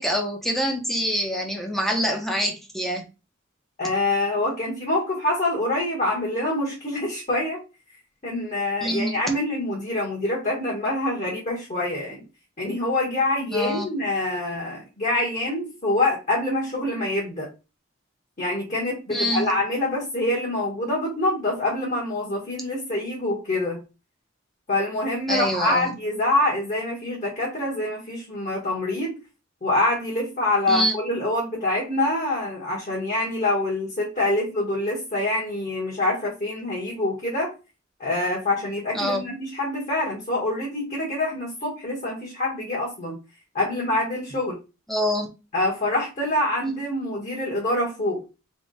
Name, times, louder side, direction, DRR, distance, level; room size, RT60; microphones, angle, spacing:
voice 1, 0.0-3.0 8.8-9.2 13.5-13.9 19.1-19.5 25.3-26.0 30.7-30.9 36.9-37.0 38.9-39.2 44.9-45.3, equal, ahead, 0.9 m, -25 dB
voice 2, 3.8-7.6 8.2-12.2 12.6-17.5 18.4-23.8 24.7-29.2 29.6-37.5 38.0-43.2 43.5-44.6 45.5-48.2, left 2 dB, 40° left, 1.6 m, -25 dB
3.6 x 3.0 x 4.0 m
head